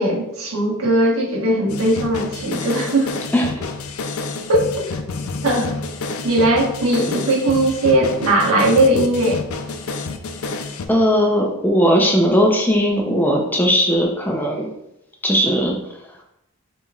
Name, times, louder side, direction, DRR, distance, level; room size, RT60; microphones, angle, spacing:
voice 1, 0.0-3.1 4.5-4.9 5.4-5.7 6.2-9.4, right 1 dB, 90° right, -3 dB, 1.3 m, -18 dB
sound 1, 1.7-10.9, left 3 dB, 90° left, 0.5 m, -29 dB
voice 2, 10.9-14.7 15.2-15.8, equal, 10° left, 0 dB, 0.6 m, -18 dB
6.7 x 3.0 x 2.4 m, 0.83 s
head